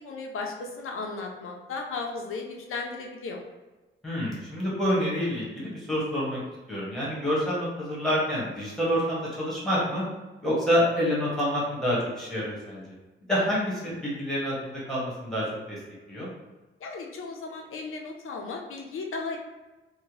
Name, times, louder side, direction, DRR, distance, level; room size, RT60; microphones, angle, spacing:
voice 1, 0.0-3.4 16.8-19.4, left 4 dB, 80° left, 1 dB, 0.5 m, -35 dB
voice 2, 4.0-6.4 6.7-10.0 10.4-12.8 13.3-15.8 16.1-16.3, equal, ahead, -7 dB, 1.0 m, -27 dB
2.8 x 2.1 x 3.0 m, 1.2 s
wide cardioid pair, 150°, 21 cm